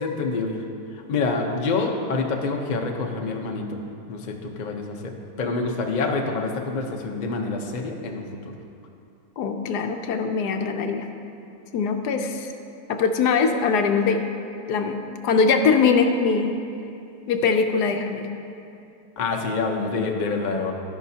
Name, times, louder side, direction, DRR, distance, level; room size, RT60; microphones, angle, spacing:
voice 1, 0.0-0.6 1.1-3.8 4.1-8.2 19.2-20.7, left 3 dB, 40° left, 2 dB, 0.6 m, -27 dB
voice 2, 9.4-11.1 11.7-12.5 12.9-14.2 14.7-15.0 15.2-16.6 17.3-18.3, left 5 dB, 75° left, 5 dB, 1.2 m, -22 dB
13.0 x 10.5 x 2.8 m, 2.6 s
omnidirectional pair, 1.8 m